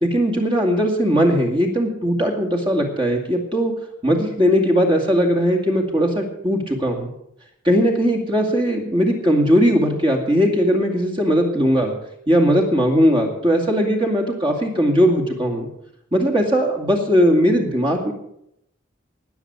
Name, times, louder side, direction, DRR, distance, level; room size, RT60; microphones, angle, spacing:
voice 1, 0.0-3.7 4.0-7.1 7.6-11.9 12.3-15.7 16.1-18.1, equal, 25° right, 2 dB, 2.4 m, -19 dB
19.0 x 7.1 x 8.2 m, 0.77 s
head